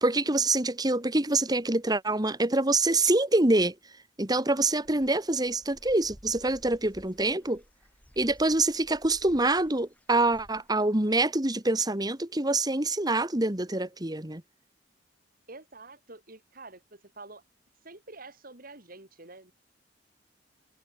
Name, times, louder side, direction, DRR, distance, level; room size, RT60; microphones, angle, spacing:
voice 1, 0.0-3.7 4.2-7.6 8.2-14.4, right 2 dB, 20° right, 2.1 m, -25 dB
Dog / Bird, 4.5-10.7, equal, 10° left, 6.2 m, -56 dB
voice 2, 15.5-17.4 17.8-19.5, right 3 dB, 50° right, 4.3 m, -47 dB
head